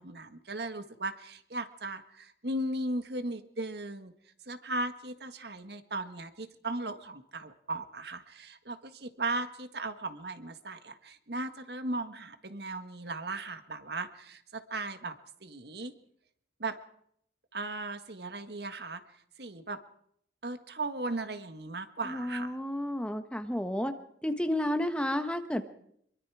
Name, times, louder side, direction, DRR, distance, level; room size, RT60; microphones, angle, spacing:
voice 1, 0.0-4.1 4.5-15.1 15.4-15.9 16.6-16.8 17.5-19.0 19.4-19.8 20.4-22.6, right 2 dB, 65° right, 9 dB, 1.7 m, -37 dB
voice 2, 22.1-23.9 24.2-25.6, left 1 dB, 5° left, 7 dB, 1.3 m, -31 dB
25.5 x 23.0 x 4.9 m, 0.70 s
head